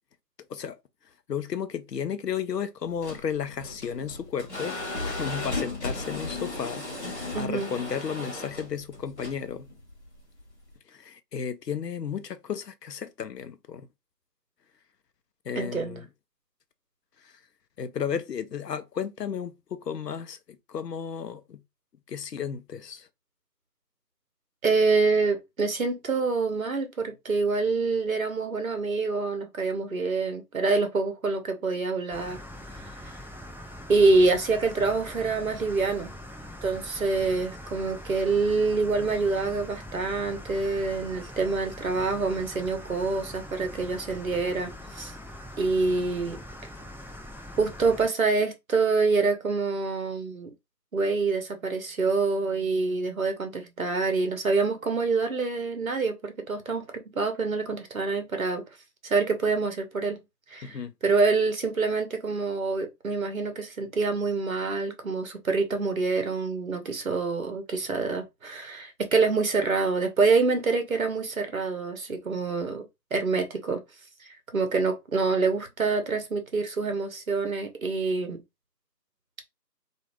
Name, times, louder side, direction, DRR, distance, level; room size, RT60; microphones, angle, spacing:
voice 1, 1.3-4.8 5.0-9.7 10.9-13.9 15.4-16.1 17.2-17.4 17.8-20.4 20.7-21.6 22.1-23.1 60.6-60.9, left 7 dB, 75° left, 0.6 m, -33 dB
sound 1, 2.9-10.7, left 2 dB, 45° left, 0.9 m, -36 dB
voice 2, 7.3-7.7 15.5-16.0 24.6-32.4 33.0-33.2 33.9-36.1 36.6-45.1 45.6-46.4 47.6-50.5 50.9-58.6 59.0-60.2 60.5-73.8 74.2-78.4, right 4 dB, 55° right, 0.8 m, -26 dB
sound 2, 32.1-48.1, left 1 dB, 5° right, 0.3 m, -42 dB
2.4 x 2.4 x 3.0 m
figure-of-eight pair, 175°, 50 cm